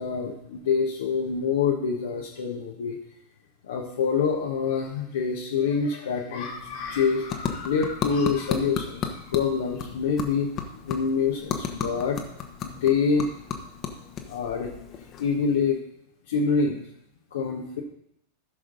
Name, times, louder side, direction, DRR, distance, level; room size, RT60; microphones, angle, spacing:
voice 1, 0.0-3.0 3.7-10.5 10.9-12.2 12.6-13.3 14.3-14.7 15.2-15.8 16.3-16.8 17.3-17.8, left 5 dB, 60° left, -1 dB, 1.3 m, -26 dB
sound 1, 6.3-15.8, left 7 dB, 35° left, 1.4 m, -35 dB
15.0 x 6.5 x 4.0 m, 0.75 s
figure-of-eight pair, 90°, 0 cm